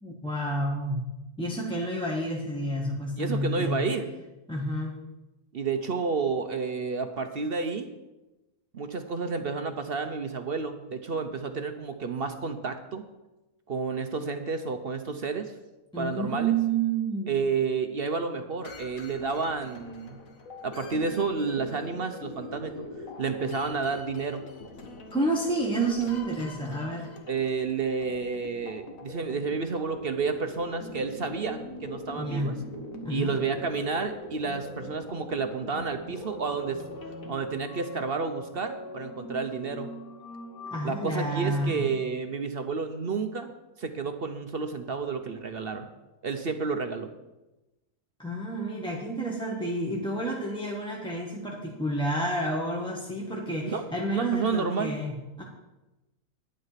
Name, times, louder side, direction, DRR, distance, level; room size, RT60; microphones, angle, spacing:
voice 1, 0.0-1.0 1.4-3.8 4.5-4.9 15.9-17.3 25.1-27.1 32.2-32.5 33.0-33.4 40.7-41.8 48.2-55.4, right 2 dB, 5° left, -2 dB, 1.3 m, -29 dB
voice 2, 3.2-4.1 5.5-7.9 8.7-13.0 13.7-15.5 16.0-16.5 17.3-20.2 20.6-22.9 23.2-24.4 27.3-32.5 33.1-36.8 37.3-39.9 40.8-45.9 46.2-47.1 53.6-53.8 54.1-55.0, right 5 dB, 50° right, 7 dB, 0.8 m, -30 dB
sound 1, 18.6-37.4, left 2 dB, 60° left, 1.8 m, -43 dB
sound 2, 35.9-42.0, left 2 dB, 90° left, 1.9 m, -43 dB
11.0 x 9.8 x 5.7 m, 1.1 s
omnidirectional pair, 1.6 m